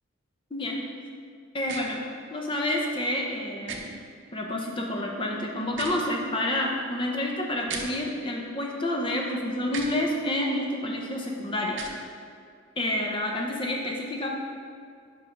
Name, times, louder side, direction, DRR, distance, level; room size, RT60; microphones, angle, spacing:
voice 1, 0.5-0.9 1.5-2.0 2.3-3.8 4.3-11.8 12.8-14.3, left 1 dB, 25° left, 0 dB, 0.7 m, -29 dB
sound 1, 1.6-1.8 3.7-3.8 5.7-6.0 7.7-7.9 9.7-9.9 11.7-12.0, right 5 dB, 65° right, 0.7 m, -35 dB
5.4 x 4.8 x 5.1 m, 2.3 s
head